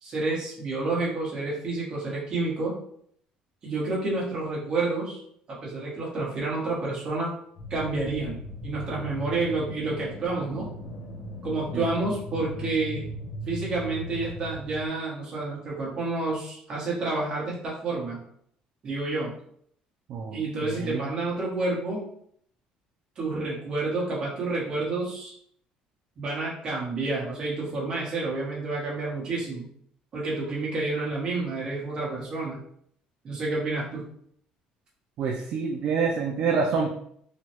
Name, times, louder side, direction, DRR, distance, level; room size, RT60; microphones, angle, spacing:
voice 1, 0.0-2.7 3.6-5.2 5.5-7.3 7.7-10.7 11.4-13.0 13.5-18.2 18.8-19.3 20.3-22.0 23.2-25.3 26.2-29.6 30.1-32.6 33.2-34.0, right 3 dB, 30° right, -5 dB, 1.1 m, -29 dB
sound 1, 7.6-14.9, equal, 60° left, 0.7 m, -38 dB
voice 2, 20.1-21.1 35.2-36.9, right 5 dB, 50° right, 1 dB, 0.3 m, -27 dB
3.1 x 2.2 x 2.9 m, 0.66 s
cardioid pair, 165°, 3 cm